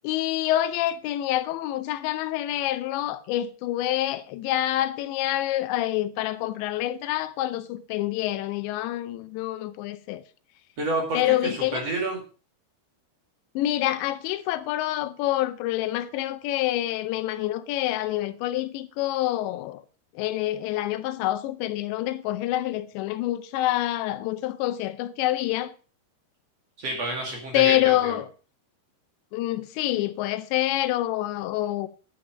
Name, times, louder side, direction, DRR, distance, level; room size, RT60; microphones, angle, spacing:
voice 1, 0.0-10.2 11.1-11.9 13.6-19.8 20.2-25.7 27.5-28.3 29.3-31.9, left 14 dB, 85° left, 2.9 m, -27 dB
voice 2, 10.8-12.2 26.8-28.1, right 2 dB, 45° right, 2.7 m, -29 dB
10.0 x 7.8 x 5.1 m
omnidirectional pair, 5.1 m